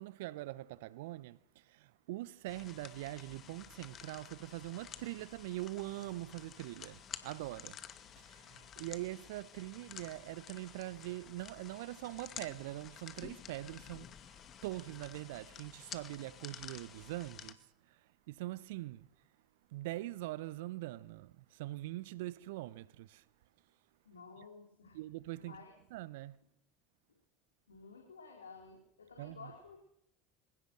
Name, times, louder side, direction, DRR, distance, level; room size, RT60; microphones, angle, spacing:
voice 1, 0.0-7.8 8.2-17.6 17.9-18.0 18.3-19.1 19.7-23.2 24.9-25.6 25.9-26.4 29.2-29.5, right 17 dB, 65° right, 1.0 m, -43 dB
sound 1, 2.5-17.5, left 9 dB, 40° left, 2.3 m, -51 dB
voice 2, 24.0-25.0 25.4-25.7 27.7-29.8, left 4 dB, 80° left, 4.2 m, -53 dB
26.0 x 17.5 x 6.3 m
figure-of-eight pair, 70°, 0 cm